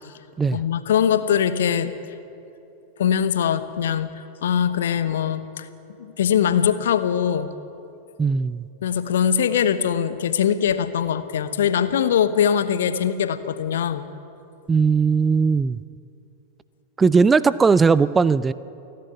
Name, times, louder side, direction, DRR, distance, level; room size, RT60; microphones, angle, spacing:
voice 1, 0.5-1.9 3.0-4.1 4.4-5.7 6.0-7.5 8.8-14.1, left 8 dB, 60° left, 12 dB, 1.1 m, -22 dB
voice 2, 8.2-8.6 14.7-15.8 17.0-18.5, right 5 dB, 15° right, 18 dB, 0.4 m, -18 dB
29.0 x 11.5 x 9.6 m, 2.8 s
figure-of-eight pair, 90°, 0 cm